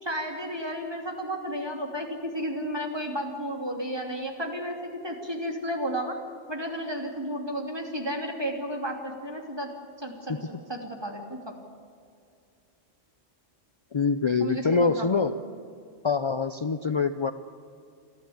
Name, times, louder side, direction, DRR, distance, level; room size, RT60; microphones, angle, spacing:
voice 1, 0.0-6.2 6.5-9.7 10.0-11.5 14.4-15.5, equal, 20° right, 1 dB, 2.9 m, -33 dB
voice 2, 13.9-15.3 16.0-17.3, left 4 dB, 50° left, 10 dB, 0.3 m, -25 dB
29.5 x 11.5 x 8.7 m, 2.4 s
omnidirectional pair, 1.3 m